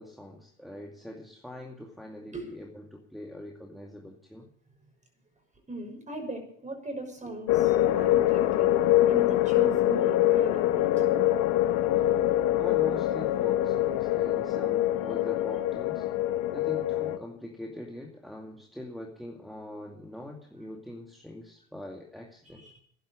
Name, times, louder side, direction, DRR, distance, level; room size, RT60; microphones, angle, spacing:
voice 1, 0.0-4.5 12.0-12.2 12.6-16.1 16.5-22.6, left 1 dB, ahead, 0 dB, 2.3 m, -43 dB
voice 2, 5.7-8.8 9.1-11.0 22.4-22.8, right 2 dB, 20° right, 4 dB, 6.1 m, -39 dB
sound 1, 7.5-17.2, left 13 dB, 60° left, 1.2 m, -24 dB
12.5 x 11.0 x 8.6 m, 0.62 s
hypercardioid pair, 80°, 34 cm